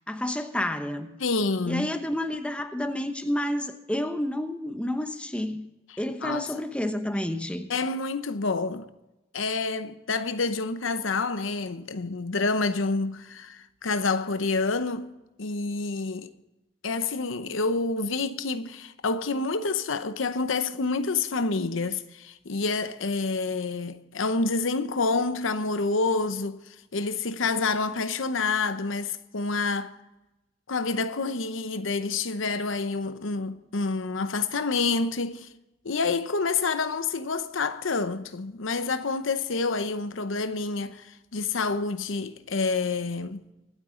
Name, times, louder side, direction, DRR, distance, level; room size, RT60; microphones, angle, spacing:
voice 1, 0.1-1.2 1.7-5.6 6.0-7.7, left 1 dB, 5° left, 0.9 m, -30 dB
voice 2, 1.2-1.9 6.2-6.5 7.7-8.9 9.3-15.1 15.4-16.3 16.8-26.6 26.9-30.0 30.7-35.5 35.8-43.4, left 3 dB, 85° left, 0.9 m, -28 dB
24.0 x 9.0 x 3.8 m
head